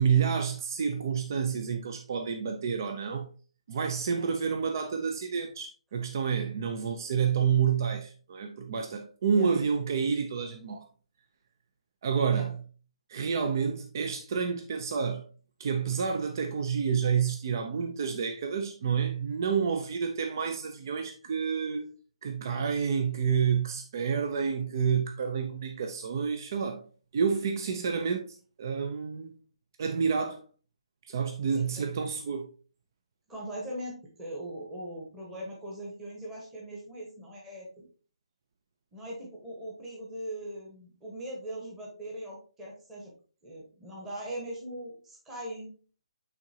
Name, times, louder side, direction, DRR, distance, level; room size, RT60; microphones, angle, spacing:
voice 1, 0.0-3.3 3.7-10.9 12.0-12.6 13.1-15.3 15.6-21.9 22.2-26.9 27.1-29.4 29.8-30.4 31.0-32.5, right 6 dB, 35° right, 0.5 m, -29 dB
voice 2, 33.3-37.8 38.9-43.1 43.4-45.7, right 1 dB, 10° right, 1.1 m, -40 dB
9.0 x 3.8 x 2.8 m
hypercardioid pair, 175°, 3 cm